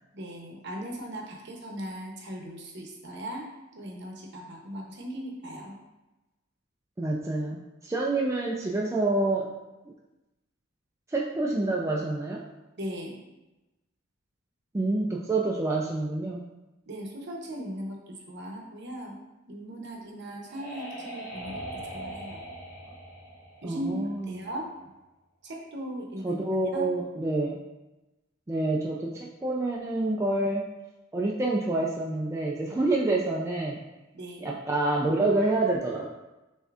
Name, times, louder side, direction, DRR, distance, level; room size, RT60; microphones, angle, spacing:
voice 1, 0.1-3.5 3.7-5.8 12.8-13.2 16.9-22.4 23.6-24.0 24.3-24.7 25.4-26.3 26.7-26.9 34.1-34.5, equal, 55° right, 0 dB, 0.8 m, -38 dB
voice 2, 7.0-9.5 11.1-12.4 14.7-16.4 23.6-24.3 26.2-27.6 28.5-30.7 31.1-33.8 34.4-36.1, right 2 dB, 15° right, -3 dB, 0.3 m, -27 dB
sound 1, 19.9-24.5, right 1 dB, 45° left, 1.5 m, -41 dB
6.5 x 2.7 x 2.4 m, 1.0 s
head